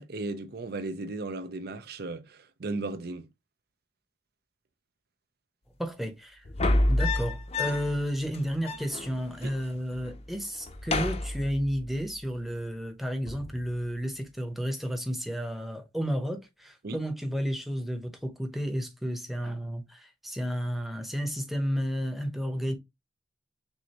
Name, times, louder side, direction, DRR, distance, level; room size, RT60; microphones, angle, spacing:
voice 1, 0.0-3.3 9.4-9.5 16.8-17.0, right 2 dB, 55° right, 0.5 m, -36 dB
voice 2, 5.8-6.4 6.9-22.7, equal, ahead, 0.8 m, -32 dB
sound 1, 6.4-8.0 8.3-8.4 8.6-9.6 9.9-10.3 10.6-12.0 13.3-13.6, left 2 dB, 35° left, 0.6 m, -29 dB
6.2 x 2.6 x 2.8 m
head